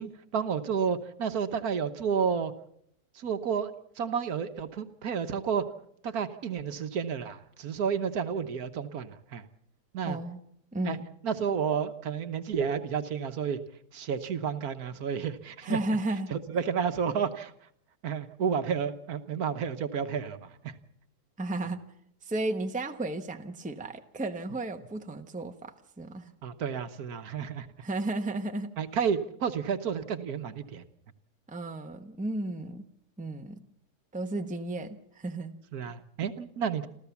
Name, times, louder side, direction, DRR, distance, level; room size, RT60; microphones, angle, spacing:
voice 1, 0.0-2.5 3.2-5.7 6.0-9.4 9.9-10.2 10.9-11.0 11.2-13.6 13.9-15.8 16.3-17.5 18.0-20.7 26.4-27.7 28.8-30.8 35.7-36.9, right 7 dB, 65° right, 10 dB, 1.5 m, -31 dB
voice 2, 10.0-10.4 10.7-11.1 15.6-16.3 21.4-21.8 22.2-26.3 27.8-28.7 31.5-32.9 33.2-33.6 34.1-35.6, right 2 dB, 5° right, 6 dB, 0.9 m, -33 dB
27.5 x 14.0 x 7.1 m, 0.73 s
omnidirectional pair, 1.7 m